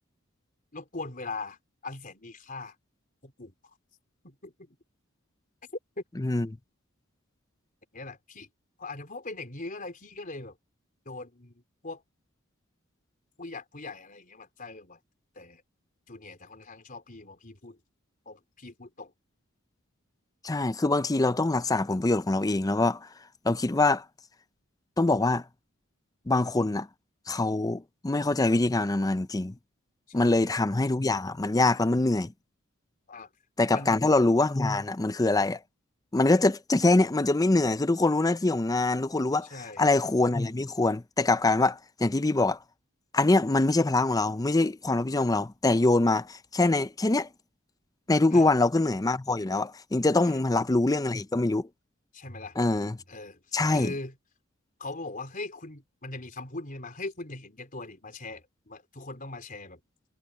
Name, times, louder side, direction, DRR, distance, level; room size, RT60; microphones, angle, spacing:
voice 1, 0.7-1.6 1.8-2.7 3.2-3.5 4.2-4.7 7.9-8.5 8.8-10.6 11.1-12.0 13.4-15.0 15.4-15.6 16.1-17.8 18.3-19.1 30.1-30.5 33.1-33.3 33.7-34.0 39.5-39.9 48.3-48.6 50.3-50.4 52.1-52.6 53.1-53.4 53.7-54.1 54.8-59.8, left 2 dB, 40° left, 4.1 m, -40 dB
voice 2, 6.2-6.5 20.4-23.1 23.4-24.0 25.0-25.4 26.3-26.9 27.3-29.5 30.1-32.3 33.6-35.6 36.1-39.5 39.8-42.6 43.1-47.3 48.1-51.7 52.6-53.0 53.5-53.9, left 2 dB, 15° left, 0.5 m, -24 dB
head